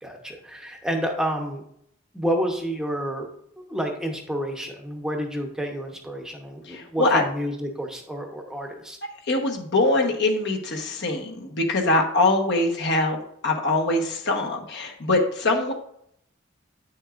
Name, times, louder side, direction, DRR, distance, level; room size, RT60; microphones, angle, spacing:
voice 1, 0.0-1.6 2.1-3.3 3.7-9.0, equal, 5° right, 2 dB, 0.8 m, -29 dB
voice 2, 6.6-7.2 9.3-13.2 13.4-15.7, left 2 dB, 60° left, 1 dB, 1.2 m, -23 dB
8.6 x 6.3 x 2.5 m, 0.71 s
head